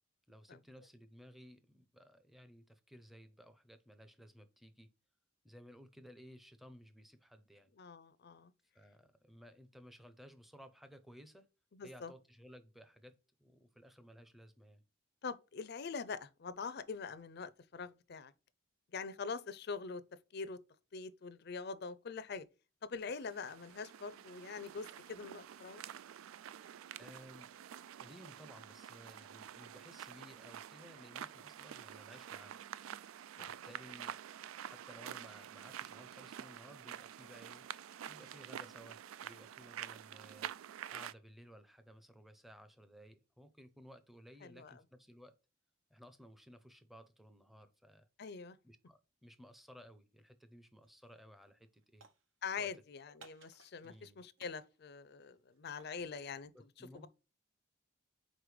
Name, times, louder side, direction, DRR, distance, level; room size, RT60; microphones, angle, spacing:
voice 1, 0.3-4.9 5.4-7.7 8.7-11.5 11.8-14.8 27.0-27.5 28.0-32.6 33.3-34.2 34.6-37.7 38.1-40.5 40.9-45.4 45.9-48.1 48.6-52.0 52.6-52.7 53.8-54.2 56.5-57.1, equal, ahead, 0.6 m, -57 dB
voice 2, 7.8-8.5 11.7-12.1 15.2-18.3 18.9-20.0 20.3-20.6 20.9-22.5 22.8-25.8 33.4-33.6 44.4-44.8 48.2-48.6 52.4-56.5 56.8-57.1, left 5 dB, 55° left, 0.5 m, -44 dB
sound 1, 23.1-41.1, right 10 dB, 85° right, 0.3 m, -48 dB
sound 2, 50.8-51.1 51.4-52.7 53.2-54.1 54.4-56.0, right 5 dB, 70° right, 0.8 m, -62 dB
5.1 x 4.2 x 4.8 m
head